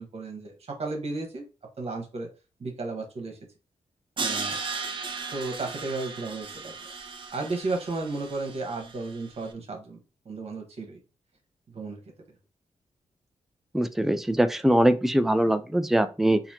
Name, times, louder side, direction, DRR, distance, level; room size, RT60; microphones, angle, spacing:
voice 1, 0.0-1.4 1.8-2.3 2.6-3.4 4.2-4.6 5.3-6.8 7.3-10.0 10.2-11.0 11.7-12.0, right 3 dB, 60° right, 2 dB, 1.3 m, -33 dB
Crash cymbal, 4.2-9.2, right 4 dB, 45° right, 0.7 m, -36 dB
voice 2, 13.7-16.4, right 1 dB, 5° right, 10 dB, 0.4 m, -22 dB
4.0 x 2.8 x 2.9 m, 0.31 s
cardioid pair, 65°, 12 cm